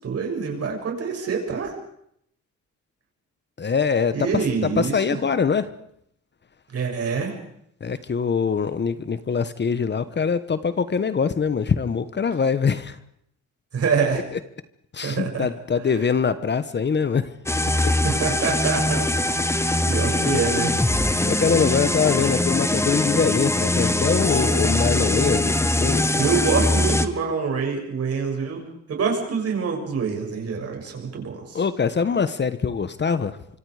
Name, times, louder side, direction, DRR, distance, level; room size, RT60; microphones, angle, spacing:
voice 1, 0.0-1.8 4.1-5.0 6.7-7.4 13.7-14.2 15.0-15.5 18.0-20.7 26.2-28.6 28.9-31.6, right 5 dB, 55° right, 1 dB, 7.1 m, -26 dB
voice 2, 3.6-5.7 7.8-13.0 14.3-14.4 14.9-17.3 20.1-20.8 21.3-26.2 31.5-33.4, left 6 dB, 35° left, 13 dB, 1.2 m, -23 dB
Huge Trance Progressor, 17.5-27.1, left 1 dB, 10° left, 1.4 m, -22 dB
25.5 x 25.0 x 5.0 m, 0.71 s
cardioid pair, 90°, 30 cm